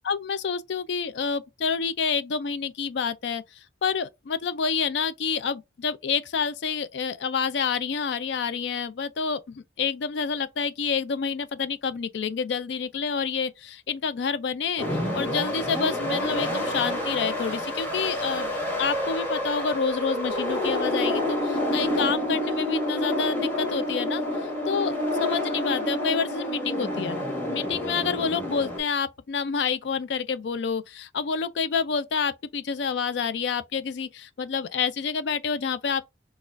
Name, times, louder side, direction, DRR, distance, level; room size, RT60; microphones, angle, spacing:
voice 1, 0.0-18.5 18.8-24.2 24.7-27.2 27.5-36.0, left 6 dB, 70° left, 0.4 m, -28 dB
sound 1, 14.8-28.8, left 1 dB, 10° left, 1.3 m, -28 dB
4.1 x 2.4 x 2.5 m
head